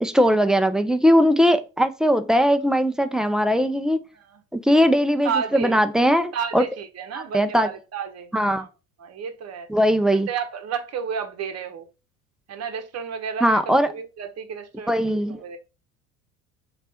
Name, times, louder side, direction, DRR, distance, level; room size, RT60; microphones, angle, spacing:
voice 1, 0.0-4.0 4.5-6.6 7.1-7.7 8.3-8.7 9.7-10.3 13.4-13.9 14.9-15.4, equal, ahead, 0.4 m, -20 dB
voice 2, 5.2-5.7 6.3-8.7 9.0-9.7 10.1-11.9 12.5-14.9 15.3-15.6, right 7 dB, 40° right, 1.0 m, -31 dB
3.2 x 2.5 x 4.2 m
hypercardioid pair, 70°, 40 cm